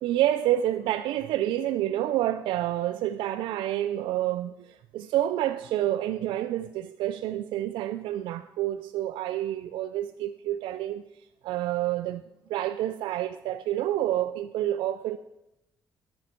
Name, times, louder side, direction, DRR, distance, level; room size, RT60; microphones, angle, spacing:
voice 1, 0.0-11.0 11.4-12.2 12.5-15.2, right 13 dB, 85° right, 0.3 m, -28 dB
10.5 x 9.0 x 4.3 m
cardioid pair, 75°, 8 cm